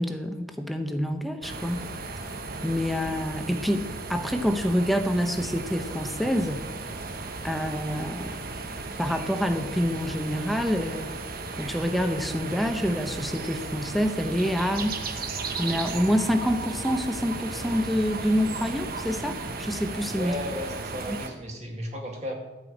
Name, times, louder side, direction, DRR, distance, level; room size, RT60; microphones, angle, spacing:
voice 1, 0.0-1.8 2.6-6.6 7.4-8.3 9.0-11.1 11.5-15.2 15.6-20.3 21.1-21.2, equal, ahead, 6 dB, 0.8 m, -27 dB
sound 1, 1.4-21.3, right 3 dB, 50° right, 1.1 m, -35 dB
voice 2, 20.2-22.3, left 1 dB, 35° right, 1 dB, 2.1 m, -34 dB
12.5 x 5.7 x 8.5 m, 1.2 s
head